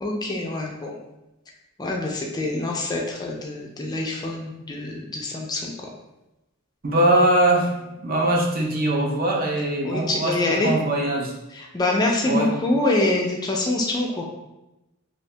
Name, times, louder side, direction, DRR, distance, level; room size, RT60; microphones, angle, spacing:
voice 1, 0.0-0.9 1.8-5.7 9.8-10.7 11.5-14.2, left 2 dB, 20° left, 0 dB, 0.3 m, -25 dB
voice 2, 6.8-7.7 8.0-11.3 12.3-12.5, right 1 dB, 45° right, -1 dB, 0.6 m, -21 dB
2.8 x 2.7 x 3.2 m, 0.97 s
head